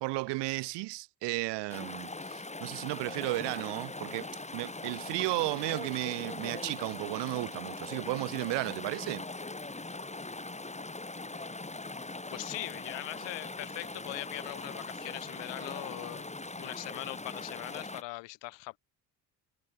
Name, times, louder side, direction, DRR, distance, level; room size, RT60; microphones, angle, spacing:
voice 1, 0.0-9.2, right 22 dB, 65° right, 0.8 m, -34 dB
Chatter / Stream, 1.7-18.0, left 2 dB, 15° left, 3.9 m, -41 dB
voice 2, 12.3-16.3 16.6-18.8, left 21 dB, 75° left, 2.3 m, -41 dB
hypercardioid pair, 65°, 44 cm